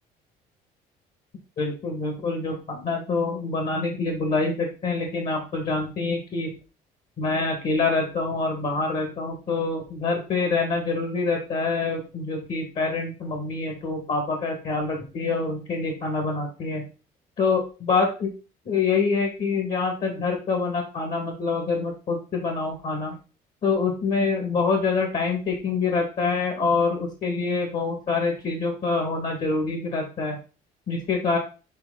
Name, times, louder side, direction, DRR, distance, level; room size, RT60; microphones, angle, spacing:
voice 1, 1.6-6.5 7.2-16.8 17.4-18.3 18.7-23.1 23.6-30.4 30.9-31.4, left 4 dB, 50° left, 2 dB, 2.1 m, -26 dB
8.0 x 3.4 x 4.0 m, 0.33 s
cardioid pair, 110°, 17 cm